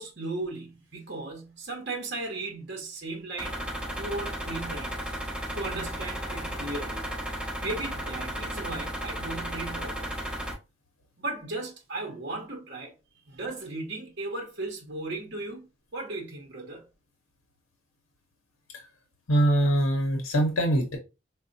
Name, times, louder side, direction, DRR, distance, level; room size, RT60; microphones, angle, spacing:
voice 1, 0.0-3.6 4.0-5.1 5.5-7.1 7.6-10.1 11.2-13.0 13.3-15.7 15.9-16.9, right 2 dB, 55° right, 0.8 m, -36 dB
sound 1, 3.4-10.5, equal, 5° right, 1.4 m, -34 dB
voice 2, 19.3-21.0, right 1 dB, 80° left, 0.7 m, -23 dB
4.1 x 2.1 x 2.5 m
head